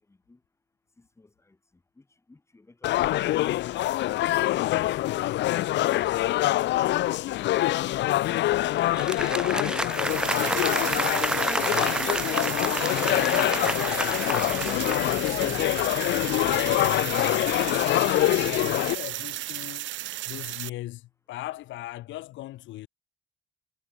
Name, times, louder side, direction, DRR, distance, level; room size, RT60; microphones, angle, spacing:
voice 1, 0.1-0.4 1.0-3.7, left 2 dB, 15° left, 4.2 m, -58 dB
sound 1, 2.8-18.9, left 15 dB, 70° left, 0.7 m, -25 dB
voice 2, 4.8-6.4 6.9-8.7 9.3-12.9 13.6-14.7 15.0-19.9 20.3-22.9, left 16 dB, 85° left, 1.8 m, -38 dB
Applause, 8.8-15.8, right 1 dB, 5° right, 0.6 m, -30 dB
sound 2, 9.9-20.7, right 15 dB, 80° right, 2.1 m, -34 dB
cardioid pair, 130°, 19 cm